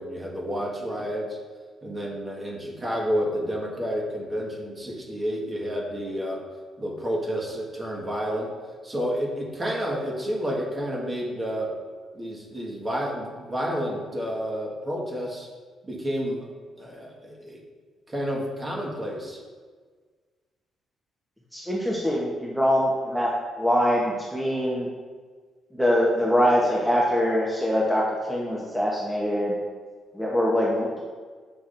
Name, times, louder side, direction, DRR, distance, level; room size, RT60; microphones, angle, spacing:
voice 1, 0.0-1.4 1.8-6.4 6.8-8.5 8.8-11.7 12.1-15.5 15.8-16.5 16.8-17.6 18.1-19.4, equal, 25° right, -2 dB, 1.5 m, -30 dB
voice 2, 21.5-23.3 23.6-24.9 25.7-29.6 30.1-31.0, equal, ahead, -4 dB, 0.9 m, -23 dB
7.2 x 6.0 x 2.6 m, 1.5 s
cardioid pair, 90°, 0 cm